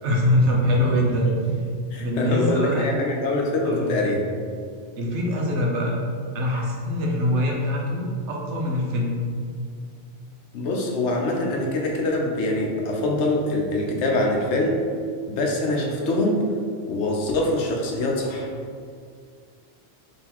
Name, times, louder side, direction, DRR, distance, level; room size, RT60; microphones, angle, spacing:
voice 1, 0.0-1.3 2.0-2.9 3.6-4.0 5.0-6.0 6.3-9.2, left 1 dB, 85° right, -2 dB, 1.0 m, -23 dB
voice 2, 1.9-4.2 10.5-14.8 15.3-16.4 16.8-18.5, left 2 dB, 85° left, 0 dB, 1.0 m, -24 dB
3.8 x 3.2 x 2.9 m, 2.2 s
omnidirectional pair, 1.1 m